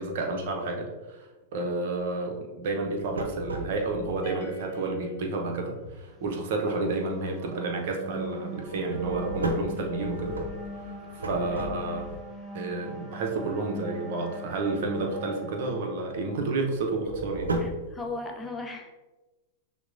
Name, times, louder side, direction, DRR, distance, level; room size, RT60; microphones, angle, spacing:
voice 1, 0.0-10.4 11.1-12.1 12.5-17.5, right 3 dB, 60° right, 1 dB, 0.8 m, -31 dB
sound 1, 2.8-4.1 8.7-12.2 16.7-17.9, right 2 dB, 85° right, 0.5 m, -33 dB
sound 2, 4.2-5.9, right 3 dB, 50° left, 0.8 m, -44 dB
sound 3, 6.2-16.7, right 1 dB, 20° right, 0.7 m, -42 dB
voice 2, 17.6-18.9, left 3 dB, 15° left, 2 dB, 0.6 m, -36 dB
5.9 x 2.2 x 2.5 m, 1.1 s
hypercardioid pair, 105°, 0 cm